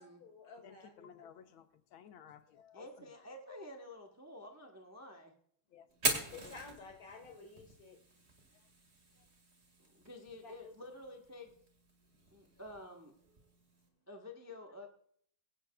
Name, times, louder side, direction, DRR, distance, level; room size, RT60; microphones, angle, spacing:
voice 1, 0.0-1.3 2.3-2.4 6.3-8.0 10.4-10.7, left 4 dB, 50° left, 5 dB, 2.0 m, -53 dB
voice 2, 0.6-3.1 5.7-5.9 6.3-6.5, left 8 dB, 85° left, 9 dB, 1.6 m, -56 dB
voice 3, 2.7-5.3 9.8-11.5 12.3-13.1 14.1-14.9, left 1 dB, 15° right, 2 dB, 0.6 m, -50 dB
Fire, 5.9-13.9, right 3 dB, 35° right, 2.2 m, -43 dB
22.5 x 8.6 x 2.3 m, 0.64 s
omnidirectional pair, 2.2 m